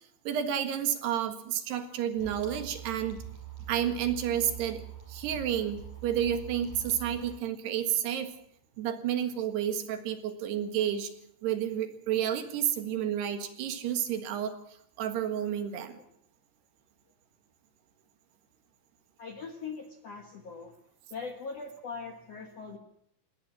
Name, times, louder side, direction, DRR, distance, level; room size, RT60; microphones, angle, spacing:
voice 1, 0.3-3.2 3.7-4.8 5.1-8.3 8.8-11.1 11.4-14.6 15.0-16.0, right 10 dB, 70° right, 8 dB, 3.6 m, -30 dB
sound 1, 2.2-7.3, right 10 dB, 40° right, 5.3 m, -44 dB
voice 2, 19.2-20.7 21.1-22.8, left 5 dB, 55° left, 5 dB, 1.8 m, -41 dB
20.0 x 18.0 x 7.4 m, 0.72 s
omnidirectional pair, 5.1 m